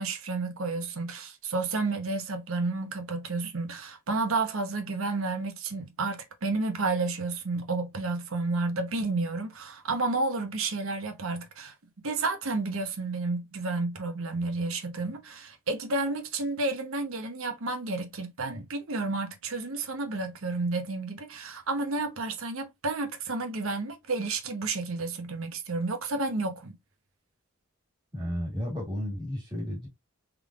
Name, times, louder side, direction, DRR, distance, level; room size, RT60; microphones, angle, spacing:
voice 1, 0.0-11.7 12.0-26.8, right 3 dB, 70° right, 0.9 m, -31 dB
voice 2, 28.1-29.9, equal, 20° right, 1.8 m, -33 dB
3.6 x 3.4 x 2.4 m
head